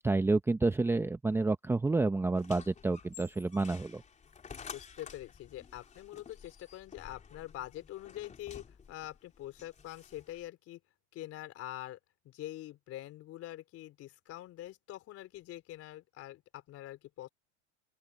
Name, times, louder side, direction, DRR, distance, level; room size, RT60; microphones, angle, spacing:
voice 1, 0.0-4.0, right 3 dB, 5° right, 0.8 m, -29 dB
sound 1, 2.4-10.5, left 6 dB, 20° left, 3.7 m, -52 dB
voice 2, 4.7-10.8 11.1-12.0 12.2-17.3, left 14 dB, 45° left, 4.2 m, -45 dB
open air
supercardioid pair, 120°, 34 cm